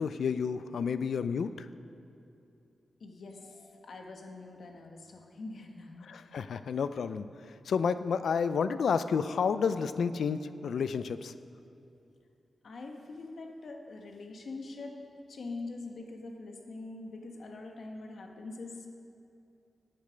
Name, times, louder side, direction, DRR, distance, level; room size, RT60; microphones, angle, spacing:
voice 1, 0.0-1.7 6.0-7.2 7.7-11.3, left 6 dB, 75° left, 12 dB, 0.4 m, -30 dB
voice 2, 3.0-6.2 12.6-15.0 15.3-18.9, left 3 dB, 60° left, 3 dB, 1.3 m, -44 dB
17.0 x 8.7 x 5.1 m, 2.7 s
wide cardioid pair, 145°, 0 cm